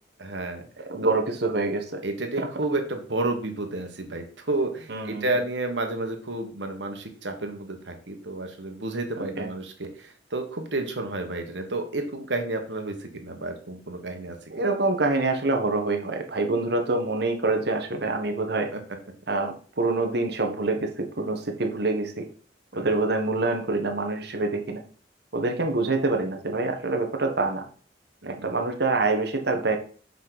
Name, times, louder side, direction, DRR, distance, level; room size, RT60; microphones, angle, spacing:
voice 1, 0.2-0.7 1.0-1.2 2.0-14.4 18.7-18.8 22.7-22.9 28.2-28.7, right 2 dB, 80° right, 5 dB, 1.6 m, -31 dB
voice 2, 0.9-2.0 2.4-2.5 4.9-5.2 9.2-9.5 14.5-18.7 19.3-22.3 22.7-24.8 25.3-27.6 28.2-29.8, right 3 dB, 65° right, 4 dB, 1.3 m, -26 dB
7.4 x 5.4 x 4.1 m, 0.43 s
head